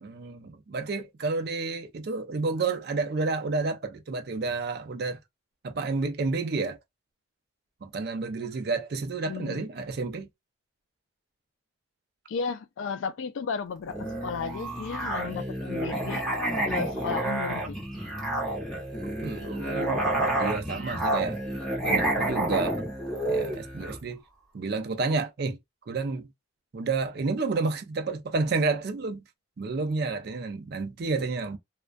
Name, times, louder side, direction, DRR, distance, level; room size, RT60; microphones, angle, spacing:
voice 1, 0.0-5.2 5.6-6.8 7.8-10.3 19.0-21.4 21.8-22.8 23.3-24.2 24.5-25.6 25.9-26.3 26.7-29.2 29.6-31.6, right 3 dB, 50° right, 0.4 m, -30 dB
voice 2, 9.2-9.7 12.3-16.2 16.7-17.8, left 5 dB, 80° left, 0.3 m, -34 dB
Musical instrument, 13.9-24.0, right 1 dB, ahead, 0.8 m, -29 dB
2.3 x 2.1 x 2.4 m
head